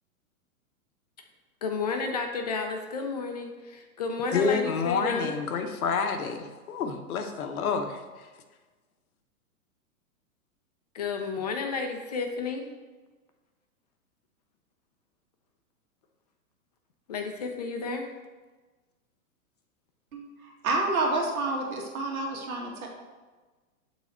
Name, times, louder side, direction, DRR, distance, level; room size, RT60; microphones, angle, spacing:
voice 1, 1.6-5.3 10.9-12.7 17.1-18.1, left 4 dB, 30° left, 0.4 m, -31 dB
voice 2, 4.3-8.3, left 5 dB, 80° left, 1.0 m, -29 dB
voice 3, 20.1-22.9, right 2 dB, 80° right, 1.8 m, -29 dB
7.1 x 3.9 x 4.4 m
hypercardioid pair, 150°, 43 cm